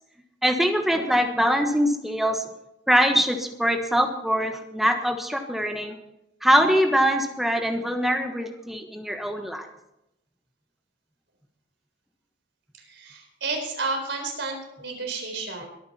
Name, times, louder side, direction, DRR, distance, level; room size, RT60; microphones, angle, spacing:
voice 1, 0.4-2.4 2.9-5.9 6.4-9.7, equal, ahead, 4 dB, 1.3 m, -23 dB
voice 2, 12.7-15.7, right 3 dB, 70° right, 3 dB, 4.2 m, -31 dB
21.5 x 9.5 x 4.4 m, 0.83 s
head